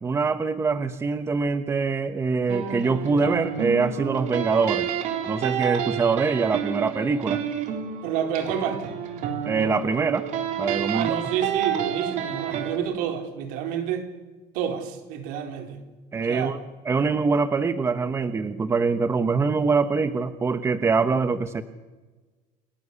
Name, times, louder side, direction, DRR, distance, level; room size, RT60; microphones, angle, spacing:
voice 1, 0.0-4.9 5.3-7.4 9.4-10.2 10.6-11.2 16.1-16.6 16.8-21.6, right 4 dB, 20° right, 1.1 m, -24 dB
sound 1, 2.5-12.8, right 8 dB, 60° right, 3.8 m, -29 dB
voice 2, 8.0-9.0 10.9-14.1 14.5-15.8 16.2-16.5, right 8 dB, 80° right, 4.3 m, -29 dB
29.5 x 19.5 x 8.3 m
cardioid pair, 155°, 14 cm